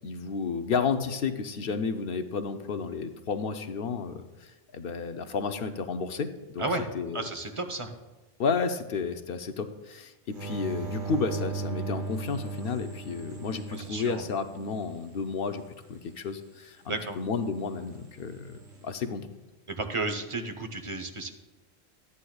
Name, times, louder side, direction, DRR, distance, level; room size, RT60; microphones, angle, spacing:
voice 1, 0.0-4.3 4.7-6.3 6.5-6.6 6.9-7.2 8.4-15.6 15.9-19.2, left 5 dB, 65° left, 8 dB, 0.8 m, -31 dB
voice 2, 6.6-7.9 13.7-14.3 16.9-17.2 19.7-21.3, right 2 dB, 30° right, 6 dB, 0.8 m, -33 dB
sound 1, 10.3-15.0 18.2-18.8, right 4 dB, 50° right, 1.3 m, -37 dB
13.5 x 9.6 x 2.3 m, 1.1 s
omnidirectional pair, 1.1 m